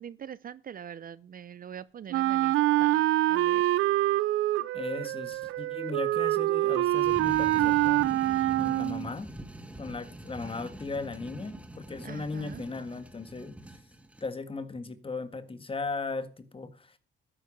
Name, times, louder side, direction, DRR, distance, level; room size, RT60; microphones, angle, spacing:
voice 1, 0.0-2.5 2.8-3.0 3.3-3.6 12.0-12.6, right 8 dB, 45° right, 0.6 m, -43 dB
Wind instrument woodwind instrument, 2.1-9.1, right 16 dB, 90° right, 0.5 m, -25 dB
voice 2, 4.7-8.1 8.6-9.3 9.8-13.6 14.2-17.0, left 3 dB, 25° left, 1.8 m, -37 dB
sound 1, 6.9-14.3, right 1 dB, 5° right, 1.7 m, -44 dB
12.5 x 10.0 x 5.3 m
cardioid pair, 90°, 20 cm